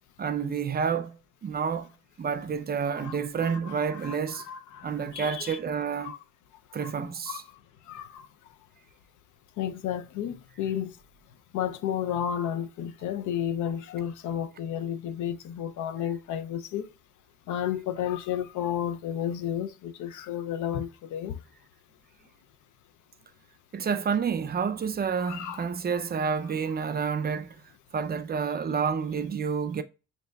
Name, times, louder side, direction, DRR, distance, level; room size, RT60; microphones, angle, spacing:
voice 1, 0.2-1.2 1.4-1.9 2.2-4.4 4.8-6.1 6.7-7.4 23.7-27.5 27.9-29.8, right 6 dB, 30° right, 0.4 m, -29 dB
voice 2, 3.4-5.6 6.0-6.2 6.8-6.9 7.3-7.4 7.9-8.3 9.6-11.0 11.5-16.9 17.5-21.4 25.2-25.7, left 9 dB, 80° left, 0.5 m, -32 dB
6.2 x 2.6 x 2.2 m
cardioid pair, 90°, 30 cm